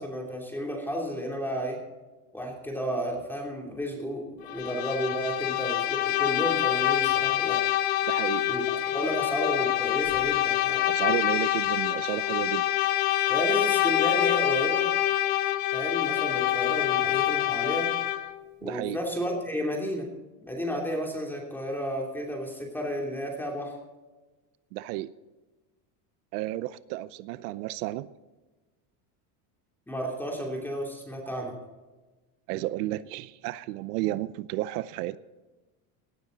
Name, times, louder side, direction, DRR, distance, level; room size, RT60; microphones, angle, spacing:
voice 1, 0.0-1.8 2.3-7.6 8.4-11.0 13.3-14.9 15.7-18.0 18.6-20.1 20.4-23.7 29.9-31.6, equal, 5° left, 0 dB, 2.9 m, -32 dB
Bowed string instrument, 4.5-18.4, left 13 dB, 50° left, 1.3 m, -26 dB
voice 2, 8.1-8.5 10.9-12.6 18.6-19.0 24.7-25.1 26.3-28.1 32.5-35.2, right 16 dB, 90° right, 16 dB, 0.7 m, -32 dB
17.5 x 13.0 x 3.9 m, 1.2 s
cardioid pair, 155°, 45 cm